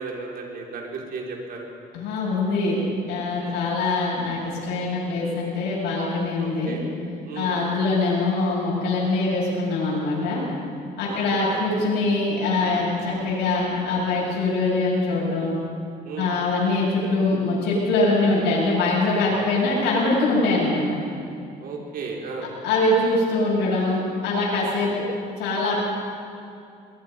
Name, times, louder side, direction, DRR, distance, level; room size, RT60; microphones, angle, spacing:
voice 1, 0.0-1.7 3.4-3.6 6.4-6.8 7.2-7.6 11.0-11.6 13.2-13.3 16.0-16.3 18.9-19.4 21.6-22.5, right 4 dB, 60° right, -1 dB, 4.9 m, -35 dB
voice 2, 1.9-2.8 3.1-6.8 7.3-10.4 11.0-15.5 16.2-20.8 22.6-25.1 25.4-25.8, left 2 dB, 90° left, -6 dB, 7.3 m, -23 dB
23.5 x 21.0 x 5.5 m, 2.5 s
cardioid pair, 110°, 17 cm